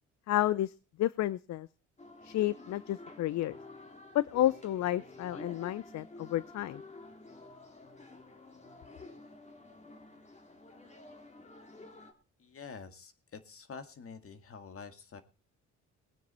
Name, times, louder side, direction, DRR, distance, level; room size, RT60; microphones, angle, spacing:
voice 1, 0.3-0.7 1.0-1.7 2.2-3.6 4.1-6.8, left 13 dB, 65° left, 18 dB, 0.5 m, -31 dB
sound 1, 2.0-12.1, left 2 dB, 25° left, 2.4 m, -51 dB
voice 2, 12.4-15.2, left 5 dB, 50° left, 9 dB, 2.0 m, -47 dB
19.5 x 9.3 x 4.3 m, 0.34 s
cardioid pair, 90°, 30 cm